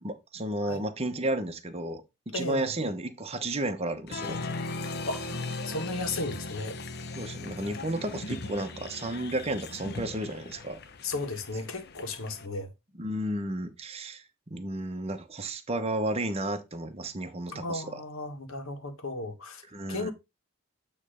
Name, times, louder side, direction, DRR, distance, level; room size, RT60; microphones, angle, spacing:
voice 1, 0.0-4.4 7.2-10.8 13.0-18.0 19.7-20.1, right 1 dB, 30° right, 0.9 m, -33 dB
voice 2, 2.3-2.7 5.1-6.8 7.4-8.0 11.0-12.7 17.5-19.6 19.9-20.1, left 2 dB, 70° left, 1.6 m, -35 dB
Applause, 4.1-12.5, left 3 dB, 50° left, 0.8 m, -38 dB
9.0 x 3.2 x 5.0 m
head